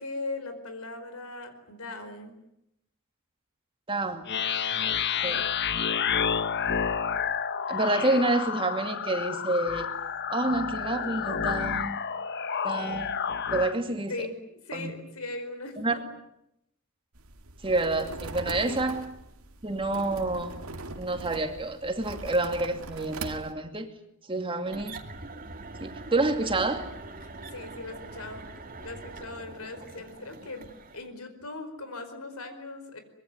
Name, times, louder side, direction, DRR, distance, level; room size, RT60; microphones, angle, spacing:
voice 1, 0.0-2.3 14.1-16.1 18.6-18.8 27.2-28.5 28.8-30.7 30.9-33.0, left 2 dB, 80° left, 9 dB, 4.9 m, -39 dB
voice 2, 3.9-4.2 5.2-5.4 7.7-9.9 10.3-12.0 12.6-13.1 13.5-14.1 14.7-14.9 15.8-16.0 17.6-19.1 19.6-20.6 21.0-23.9 24.3-25.0 25.8-26.9, right 2 dB, 25° right, 6 dB, 2.5 m, -28 dB
sound 1, 4.3-13.7, left 7 dB, 50° left, 1.0 m, -30 dB
sound 2, 17.1-23.5, right 3 dB, 70° right, 2.0 m, -41 dB
sound 3, 24.6-31.1, right 3 dB, 40° right, 2.4 m, -43 dB
24.5 x 22.0 x 9.5 m, 0.80 s
head